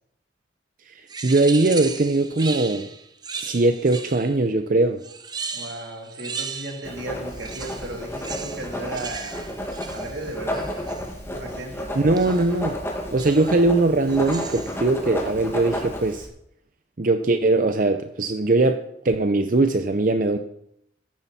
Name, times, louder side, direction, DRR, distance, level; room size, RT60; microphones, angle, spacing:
voice 1, 0.9-2.9 3.4-5.0 11.9-12.8 13.1-16.3 17.0-20.4, right 2 dB, 50° right, 8 dB, 0.6 m, -21 dB
sound 1, 1.1-4.5 5.0-7.0 7.3-11.1 12.2-12.5 13.2-13.6 14.1-14.9, right 5 dB, 25° right, 0.8 m, -36 dB
voice 2, 5.5-9.4 9.9-10.7 11.3-11.9, right 1 dB, 90° right, 0 dB, 3.4 m, -35 dB
Writing, 6.8-16.3, equal, 15° left, 1.9 m, -32 dB
14.5 x 10.5 x 4.2 m, 0.77 s
head